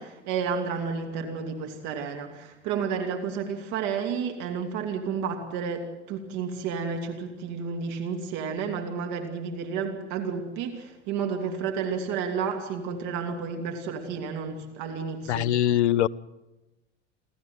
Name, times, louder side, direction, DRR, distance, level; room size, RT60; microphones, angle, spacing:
voice 1, 0.0-15.5, right 6 dB, 50° right, 4 dB, 2.8 m, -31 dB
voice 2, 15.3-16.1, left 12 dB, 65° left, 23 dB, 0.7 m, -22 dB
30.0 x 13.0 x 9.2 m, 1.0 s
figure-of-eight pair, 75°, 37 cm